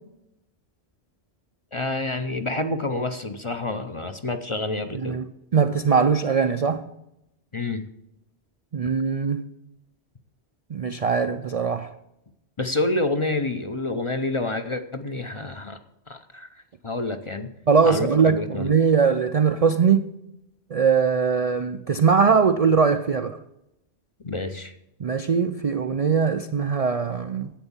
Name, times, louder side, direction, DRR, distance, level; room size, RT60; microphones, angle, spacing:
voice 1, 1.7-5.2 7.5-7.9 12.6-15.8 16.1-17.5 17.8-18.7 24.2-24.7, left 2 dB, 35° left, 0.6 m, -28 dB
voice 2, 5.5-6.8 8.7-9.4 10.7-11.9 17.7-20.1 20.7-23.4 25.0-27.5, right 6 dB, 50° right, 0.4 m, -21 dB
10.5 x 8.1 x 7.1 m
omnidirectional pair, 1.2 m